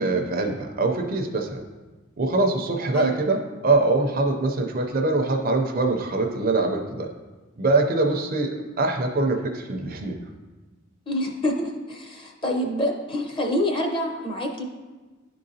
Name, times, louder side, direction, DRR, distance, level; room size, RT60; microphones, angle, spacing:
voice 1, 0.0-1.6 2.2-7.1 7.6-10.2, right 2 dB, 45° right, 4 dB, 0.5 m, -23 dB
voice 2, 11.1-14.6, left 1 dB, 25° left, 2 dB, 0.7 m, -27 dB
10.5 x 3.8 x 2.7 m, 1.2 s
head